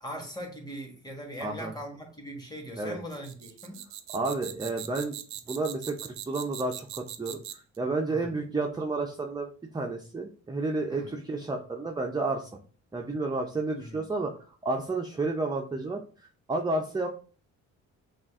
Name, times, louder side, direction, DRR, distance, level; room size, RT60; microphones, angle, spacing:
voice 1, 0.0-3.8 8.1-8.4 10.9-11.1 13.8-14.1, equal, 15° left, 2 dB, 1.6 m, -40 dB
voice 2, 1.4-1.7 2.8-3.0 4.1-5.2 5.5-12.5 12.9-14.3 14.6-16.0 16.5-17.1, right 3 dB, 15° right, 2 dB, 0.5 m, -31 dB
sound 1, 3.1-7.8, right 11 dB, 70° right, 0.6 m, -41 dB
6.0 x 2.5 x 3.5 m, 0.40 s
cardioid pair, 90°, 30 cm